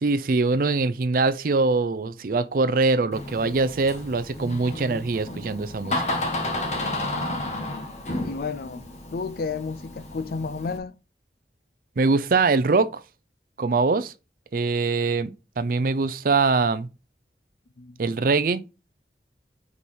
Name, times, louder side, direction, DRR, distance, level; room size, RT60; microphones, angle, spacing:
voice 1, 0.0-6.0 12.0-13.0 13.6-14.1 14.5-16.9 18.0-18.6, right 3 dB, 50° right, 0.4 m, -23 dB
Door, 3.1-10.8, left 1 dB, 40° left, 1.1 m, -32 dB
voice 2, 8.2-8.8 9.1-10.9 17.8-18.0, left 4 dB, 55° left, 0.4 m, -32 dB
5.4 x 4.8 x 4.3 m
head